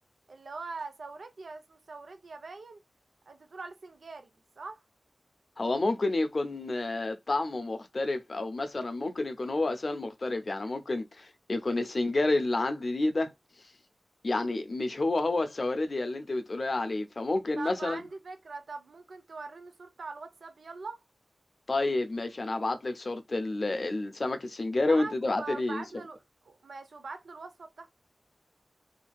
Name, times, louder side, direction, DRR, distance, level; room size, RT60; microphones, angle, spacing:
voice 1, 0.3-2.8 3.3-4.8 17.6-21.0 24.9-27.9, right 3 dB, 85° right, 0.6 m, -42 dB
voice 2, 5.6-13.3 14.2-18.0 21.7-25.8, left 2 dB, 55° left, 0.6 m, -29 dB
2.7 x 2.6 x 2.2 m
wide cardioid pair, 55°, 0 cm